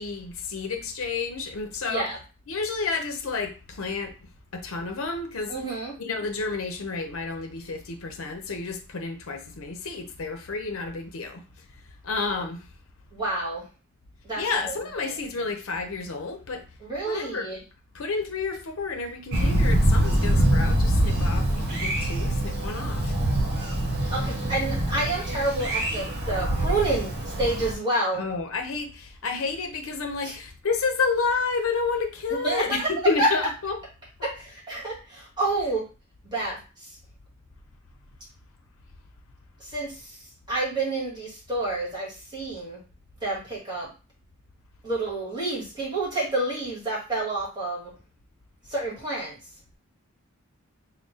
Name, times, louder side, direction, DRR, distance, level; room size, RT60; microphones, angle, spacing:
voice 1, 0.0-2.1 2.5-4.1 4.5-5.5 6.0-11.4 12.0-12.7 14.4-16.6 17.1-17.5 17.9-23.1 28.1-33.8, left 4 dB, 80° left, 5 dB, 0.7 m, -30 dB
voice 2, 5.5-5.9 13.1-13.6 14.2-14.7 15.0-15.1 16.8-17.6 24.1-28.2 30.2-30.3 32.4-32.9 33.2-33.3 34.2-35.9 36.3-36.6 39.6-40.0 40.5-42.8 43.2-43.9 44.8-47.9 48.7-49.3, right 2 dB, 20° right, -5 dB, 1.8 m, -29 dB
Thunder, 19.3-27.7, right 1 dB, 55° right, 1.0 m, -24 dB
3.6 x 2.1 x 4.0 m, 0.32 s
head